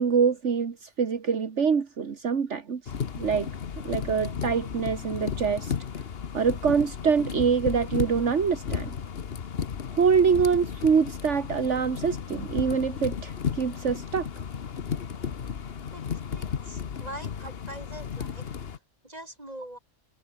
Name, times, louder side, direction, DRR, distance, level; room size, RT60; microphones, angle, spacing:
voice 1, 0.0-3.5 3.8-5.7 6.3-8.9 9.9-14.3, right 6 dB, 65° right, 1.9 m, -25 dB
sound 1, 2.9-18.8, left 7 dB, 55° left, 1.2 m, -34 dB
voice 2, 16.3-19.8, right 1 dB, 30° right, 7.3 m, -43 dB
open air
omnidirectional pair, 1.3 m